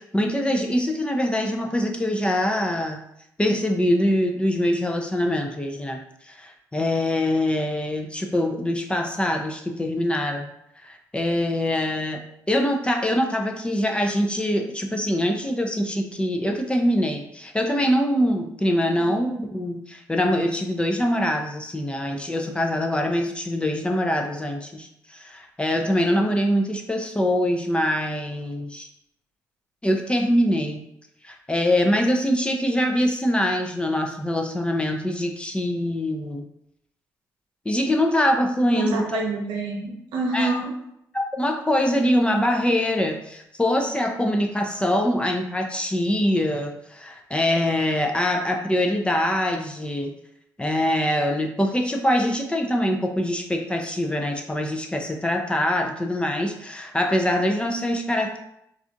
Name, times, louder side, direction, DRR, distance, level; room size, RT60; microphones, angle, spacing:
voice 1, 0.0-3.0 3.4-10.5 10.8-12.2 12.5-28.9 29.8-30.8 31.2-36.5 37.7-39.2 40.3-40.5 41.1-50.1 50.6-58.4, left 1 dB, 15° left, 3 dB, 0.5 m, -24 dB
voice 2, 38.7-40.8, right 2 dB, 75° right, 0 dB, 0.7 m, -27 dB
3.2 x 2.4 x 2.6 m, 0.77 s
supercardioid pair, 60°, 8 cm